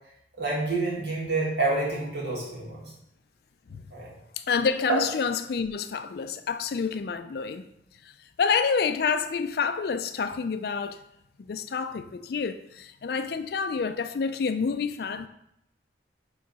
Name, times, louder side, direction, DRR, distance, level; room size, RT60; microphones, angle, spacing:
voice 1, 0.4-2.9 3.9-4.1 4.9-5.0, right 3 dB, 65° right, -5 dB, 2.0 m, -28 dB
voice 2, 4.5-7.7 8.4-11.0 11.4-15.3, left 5 dB, 55° left, 9 dB, 0.3 m, -28 dB
5.2 x 3.9 x 4.7 m, 0.77 s
head